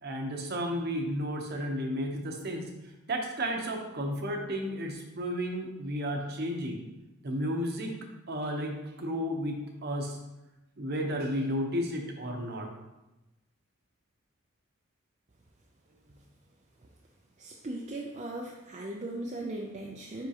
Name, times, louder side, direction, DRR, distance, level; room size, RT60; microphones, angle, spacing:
voice 1, 0.0-2.6 3.1-6.8 7.2-8.0 8.3-10.2 10.8-12.7, equal, 50° right, 2 dB, 0.9 m, -33 dB
voice 2, 17.4-20.3, right 1 dB, 35° right, -1 dB, 0.5 m, -38 dB
9.4 x 3.7 x 2.9 m, 1.0 s
head